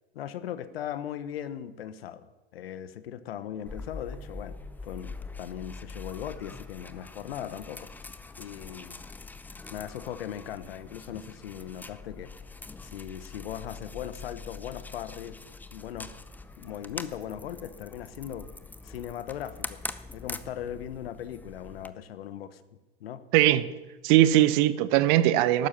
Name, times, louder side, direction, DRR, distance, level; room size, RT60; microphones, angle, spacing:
voice 1, 0.1-4.6 4.8-8.1 8.4-9.0 9.7-12.3 12.8-15.4 15.7-16.2 16.6-18.5 18.8-19.8 20.1-22.6 23.0-23.2, left 10 dB, 70° left, 1.2 m, -38 dB
sound 1, 3.7-21.9, left 3 dB, 5° left, 0.6 m, -43 dB
voice 2, 23.3-23.7 24.0-25.7, right 13 dB, 50° right, 1.0 m, -20 dB
14.5 x 12.0 x 5.8 m
hypercardioid pair, 100°, 32 cm